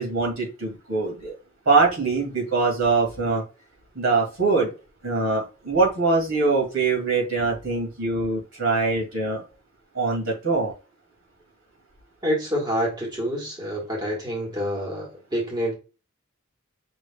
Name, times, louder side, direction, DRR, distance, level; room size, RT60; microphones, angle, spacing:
voice 1, 0.0-1.3 1.7-3.4 4.0-4.7 5.0-9.4 9.9-10.7, right 3 dB, 80° right, 0 dB, 2.2 m, -23 dB
voice 2, 12.2-15.7, equal, 20° right, -3 dB, 1.7 m, -27 dB
6.0 x 3.4 x 2.3 m, 0.32 s
head